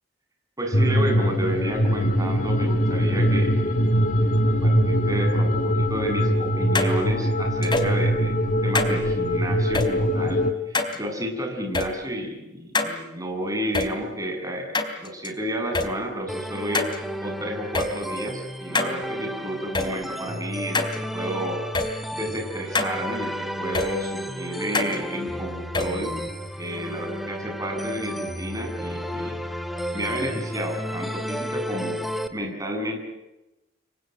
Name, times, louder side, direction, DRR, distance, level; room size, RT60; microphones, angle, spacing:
voice 1, 0.6-3.9 4.2-14.7 15.0-17.0 17.2-21.6 22.1-26.1 26.6-29.4 29.9-32.0 32.3-33.0, equal, 20° right, 3 dB, 7.9 m, -31 dB
sound 1, 0.7-10.5, equal, 45° left, 2.1 m, -22 dB
sound 2, 6.7-6.9 7.6-7.9 8.7-8.9 9.7-9.9 10.7-11.0 11.7-11.9 12.7-12.9 13.7-13.9 14.7-15.3 15.7-15.9 16.7-17.0 17.7-17.9 18.7-18.9 19.7-19.9 20.7-21.0 21.7-21.9 22.7-22.9 23.7-23.9 24.7-25.0 25.7-25.9, left 3 dB, 25° left, 3.5 m, -24 dB
sound 3, 16.3-32.3, equal, ahead, 2.1 m, -32 dB
28.5 x 24.5 x 7.8 m, 0.97 s
head